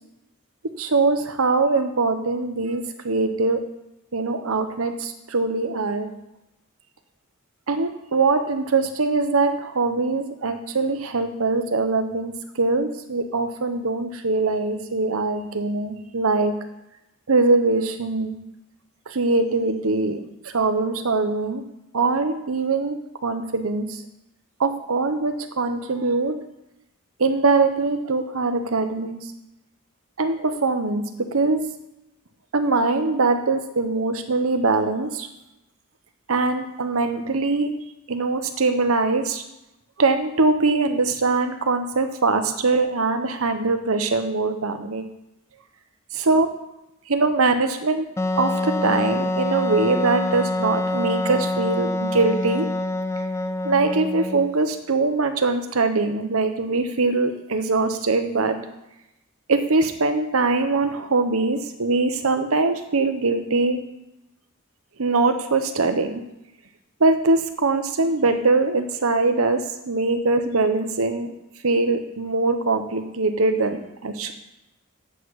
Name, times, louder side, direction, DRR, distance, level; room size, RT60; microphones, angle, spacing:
voice 1, 0.8-3.6 4.1-6.1 7.7-16.5 17.3-18.4 19.1-21.6 21.9-24.0 24.6-26.4 27.2-29.2 30.2-31.0 31.3-31.6 32.5-35.3 36.3-37.7 38.1-39.4 40.0-45.0 46.1-46.5 47.1-48.1 48.4-52.7 53.6-58.6 59.5-63.8 65.0-66.2 67.0-69.6 69.9-71.3 71.6-74.3, right 3 dB, 85° right, 7 dB, 0.9 m, -22 dB
Wind instrument woodwind instrument, 48.2-54.6, left 1 dB, 15° left, 0.3 m, -25 dB
8.0 x 7.7 x 4.8 m, 0.91 s
head